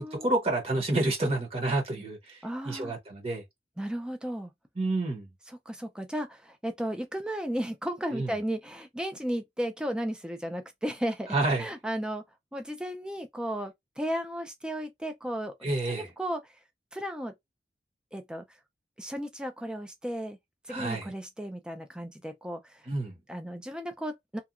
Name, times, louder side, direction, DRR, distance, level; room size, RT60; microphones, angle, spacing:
voice 1, 0.0-2.4 2.6-3.4 4.8-5.3 8.1-8.3 11.3-11.6 15.6-16.1 20.7-21.1 22.9-23.2, right 2 dB, 35° right, 0.9 m, -29 dB
voice 2, 2.4-2.9 3.8-4.5 5.5-12.2 12.5-15.5 15.9-16.5 16.9-17.3 18.1-18.4 19.0-20.4 20.7-22.8 23.3-24.4, equal, 5° right, 0.4 m, -34 dB
2.8 x 2.2 x 2.4 m
head